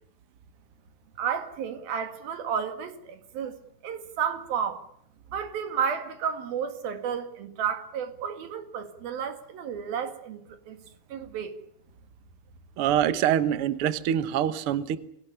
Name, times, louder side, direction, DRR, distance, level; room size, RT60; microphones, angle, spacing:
voice 1, 1.2-3.6 3.8-4.9 5.3-10.8 11.1-11.6, right 7 dB, 90° right, 3.9 m, -32 dB
voice 2, 12.8-15.0, right 10 dB, 65° right, 1.4 m, -25 dB
23.0 x 17.5 x 10.0 m
omnidirectional pair, 4.1 m